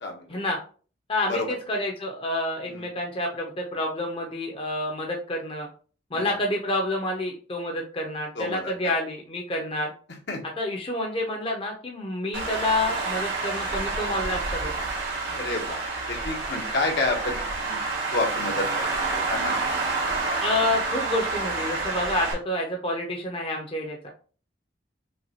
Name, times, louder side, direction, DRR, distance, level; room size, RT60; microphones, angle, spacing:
voice 1, 1.1-5.7 6.1-9.9 10.6-14.7 20.4-24.1, left 1 dB, 30° left, 0 dB, 0.7 m, -28 dB
voice 2, 8.3-8.7 10.3-10.4 15.3-15.8 16.1-17.8 18.1-19.7, left 2 dB, 65° left, 2 dB, 1.0 m, -30 dB
Traffic noise roadway noise, 12.3-22.3, right 3 dB, 90° right, 1.7 m, -28 dB
5.6 x 2.3 x 2.8 m, 0.40 s
head